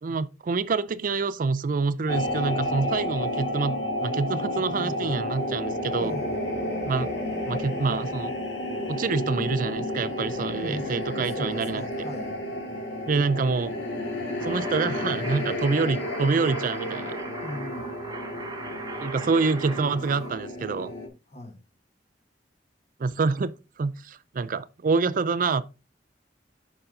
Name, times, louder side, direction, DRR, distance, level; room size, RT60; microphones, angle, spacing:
voice 1, 0.0-6.2 6.8-7.1 7.5-8.3 8.9-11.8 13.1-13.7 14.4-17.2 19.0-20.9 23.0-23.5 23.8-25.6, right 4 dB, 50° right, 0.4 m, -26 dB
sound 1, 2.1-21.1, left 1 dB, 85° left, 1.9 m, -31 dB
voice 2, 4.5-5.1 6.0-6.4 10.3-12.4 17.4-17.9 21.3-21.6, left 1 dB, 40° left, 1.5 m, -39 dB
sound 2, 14.4-20.3, right 3 dB, 20° right, 1.0 m, -40 dB
6.9 x 5.5 x 3.8 m
head